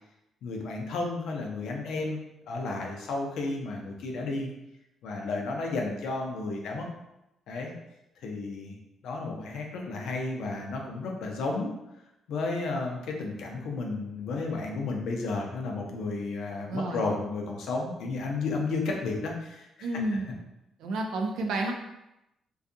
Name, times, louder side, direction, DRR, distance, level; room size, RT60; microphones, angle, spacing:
voice 1, 0.4-2.2 2.5-4.5 5.0-6.9 7.5-7.7 8.2-8.8 9.0-11.7 12.3-19.9, left 3 dB, 80° left, 1 dB, 0.5 m, -32 dB
voice 2, 16.7-17.1 19.8-20.4 20.8-21.7, right 2 dB, 80° right, 2 dB, 0.4 m, -30 dB
2.6 x 2.3 x 2.5 m, 0.89 s
cardioid pair, 90°, 0 cm